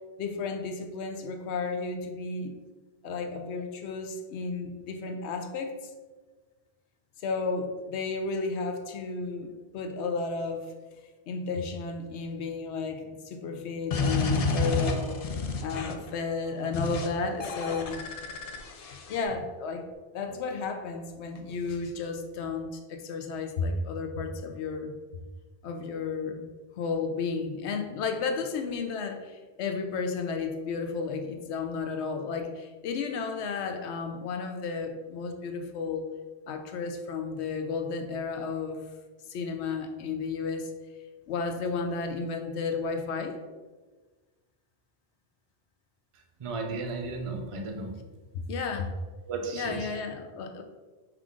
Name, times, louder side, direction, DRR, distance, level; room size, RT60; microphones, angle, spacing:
voice 1, 0.2-2.5 3.0-5.8 7.2-10.7 11.3-18.0 19.1-24.9 25.6-26.5 26.8-36.0 36.5-38.8 39.3-40.7 41.3-43.4 48.3-48.9 49.5-50.6, left 4 dB, 80° left, 6 dB, 0.9 m, -33 dB
sound 1, 13.9-16.1 16.7-17.1 17.4-19.2, left 3 dB, 55° left, 0.4 m, -30 dB
voice 2, 46.4-47.9 49.3-49.9, right 3 dB, 40° right, 2 dB, 0.5 m, -34 dB
5.8 x 2.5 x 3.6 m, 1.3 s
omnidirectional pair, 1.1 m